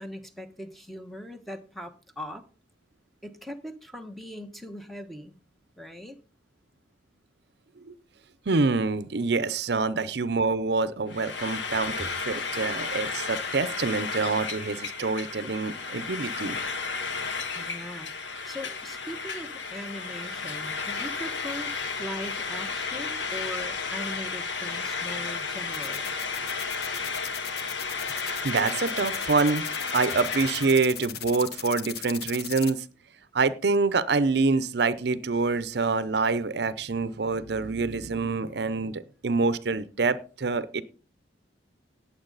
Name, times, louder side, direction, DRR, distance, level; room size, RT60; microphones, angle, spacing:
voice 1, 0.0-2.5 3.2-5.4 5.8-6.2 12.0-12.1 17.5-26.1, equal, ahead, 7 dB, 1.0 m, -40 dB
voice 2, 8.5-16.6 28.4-29.6 29.9-32.8 33.3-40.8, right 4 dB, 65° right, 15 dB, 0.6 m, -26 dB
Frying (food), 11.1-30.8, left 4 dB, 80° left, 1.7 m, -33 dB
sound 1, 25.7-32.7, left 9 dB, 55° left, 1.0 m, -37 dB
18.0 x 7.3 x 4.0 m, 0.37 s
head